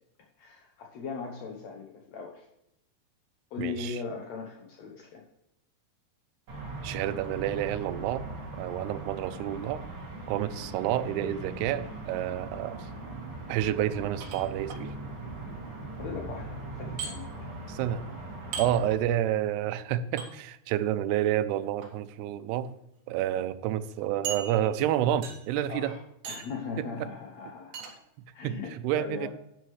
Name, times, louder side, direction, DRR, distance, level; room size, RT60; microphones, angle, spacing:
voice 1, 0.4-2.5 3.5-5.2 16.0-17.3 25.7-27.8 28.3-29.3, left 5 dB, 80° left, 1 dB, 1.6 m, -39 dB
voice 2, 3.6-4.0 6.8-8.3 8.6-9.8 10.3-12.9 13.5-14.9 17.7-18.0 18.6-22.7 23.1-26.0 26.8-27.1 28.4-29.3, right 11 dB, 85° right, 12 dB, 2.6 m, -29 dB
sound 1, 6.5-18.9, right 2 dB, 35° right, 2.8 m, -40 dB
sound 2, 14.2-14.8 17.0-17.1 18.5-18.7 20.2-20.3 21.6-21.9 22.6-22.7 23.1-23.2 24.2-24.9 25.2-25.6 26.2-26.6 27.7-27.9, right 6 dB, 55° right, 2.6 m, -37 dB
11.5 x 9.4 x 3.2 m, 0.81 s
omnidirectional pair, 4.7 m